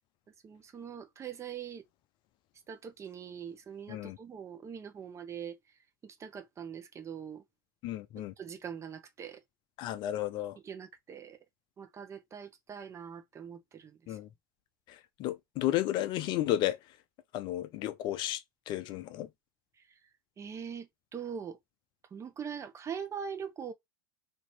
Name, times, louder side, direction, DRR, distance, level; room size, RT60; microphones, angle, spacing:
voice 1, 0.4-1.8 2.7-5.6 6.0-7.4 8.4-9.4 10.6-11.4 11.8-14.2 20.4-21.6 22.1-23.7, right 7 dB, 25° right, 1.0 m, -42 dB
voice 2, 7.8-8.3 9.8-10.6 14.1-14.3 14.9-16.8 17.3-19.3, left 13 dB, 45° left, 0.5 m, -33 dB
4.2 x 2.8 x 4.3 m
figure-of-eight pair, 85°, 11 cm